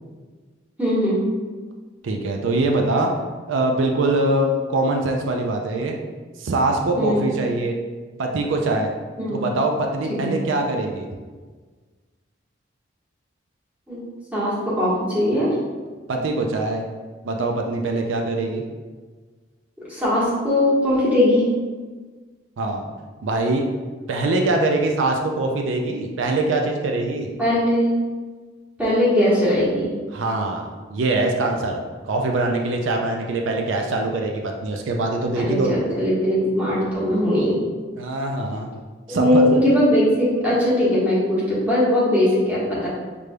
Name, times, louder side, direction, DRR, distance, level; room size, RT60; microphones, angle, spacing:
voice 1, 0.8-1.3 6.9-7.3 9.2-9.4 10.2-10.3 13.9-14.0 14.3-15.6 19.9-21.5 27.4-27.9 28.8-29.9 35.3-37.6 39.1-42.9, left 1 dB, 10° right, -10 dB, 1.3 m, -20 dB
voice 2, 2.0-3.2 3.5-6.0 6.4-7.8 8.2-8.9 9.3-11.1 16.1-16.8 17.2-18.6 22.6-22.9 23.2-23.6 24.1-27.3 30.1-35.7 38.0-38.7 39.1-39.5, right 2 dB, 85° right, 2 dB, 0.4 m, -23 dB
5.1 x 3.3 x 2.2 m, 1.4 s
head